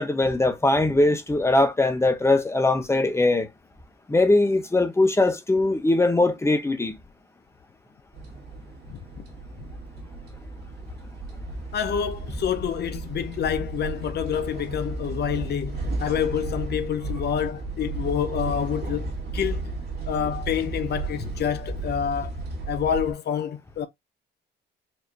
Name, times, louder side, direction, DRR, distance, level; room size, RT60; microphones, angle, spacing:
voice 1, 0.0-3.5 4.1-6.9, left 2 dB, 15° left, 0.9 m, -21 dB
sound 1, 8.1-23.1, right 2 dB, 55° right, 1.6 m, -34 dB
voice 2, 8.9-9.2 11.7-19.7 20.1-22.4 22.7-23.9, left 8 dB, 55° left, 0.5 m, -28 dB
4.6 x 2.9 x 2.7 m
cardioid pair, 90°, 20 cm